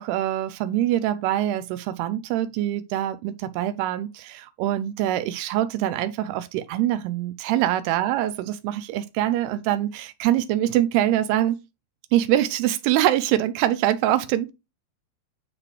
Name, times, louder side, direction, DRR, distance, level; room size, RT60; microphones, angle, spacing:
voice 1, 0.0-11.6 12.1-14.5, right 13 dB, 85° right, 2.6 m, -24 dB
10.5 x 3.9 x 3.2 m
omnidirectional pair, 4.7 m